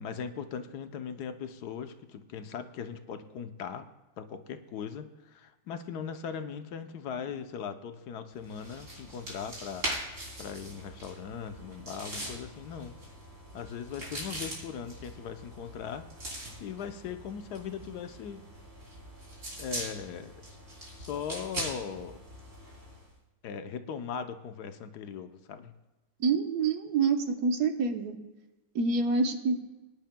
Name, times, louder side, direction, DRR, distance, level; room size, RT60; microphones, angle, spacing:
voice 1, 0.0-3.8 4.2-10.1 10.4-13.0 13.5-18.4 19.6-20.3 20.9-22.2 23.4-25.7, left 7 dB, 75° left, 8 dB, 1.3 m, -39 dB
sound 1, 8.4-23.1, right 1 dB, 50° right, 3.6 m, -42 dB
voice 2, 26.2-28.2 28.7-29.6, right 4 dB, 70° right, 6 dB, 1.4 m, -27 dB
23.5 x 10.5 x 2.2 m, 1.1 s
omnidirectional pair, 1.8 m